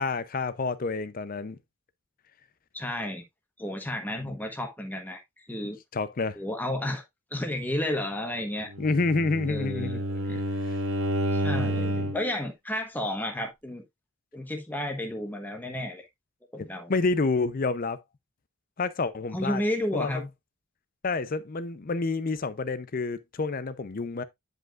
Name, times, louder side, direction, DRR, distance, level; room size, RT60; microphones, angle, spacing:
voice 1, 0.0-1.6 5.9-6.4 8.8-10.0 10.7-10.8 11.6-12.1 16.9-18.0 18.8-19.6 19.9-20.2 21.0-24.2, left 3 dB, 40° left, 0.5 m, -28 dB
voice 2, 2.7-3.2 3.6-5.8 6.3-7.0 7.3-8.7 9.5-10.4 11.3-11.8 12.1-13.8 14.3-16.0 16.5-16.9 19.3-20.2, left 1 dB, 10° left, 1.1 m, -32 dB
Bowed string instrument, 8.7-12.3, right 1 dB, 70° right, 0.9 m, -29 dB
9.8 x 5.2 x 2.4 m
head